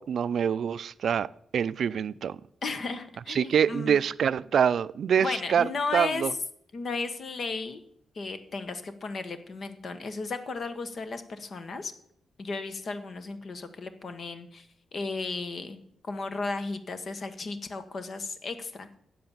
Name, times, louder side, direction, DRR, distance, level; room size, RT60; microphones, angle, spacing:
voice 1, 0.0-2.4 3.3-6.3, right 8 dB, 75° right, 0.3 m, -26 dB
voice 2, 2.6-4.0 5.2-6.2 6.7-7.8 8.1-11.9 12.4-14.7 14.9-19.0, left 3 dB, 60° left, 1.1 m, -35 dB
8.6 x 7.8 x 7.0 m
cardioid pair, 65°, 0 cm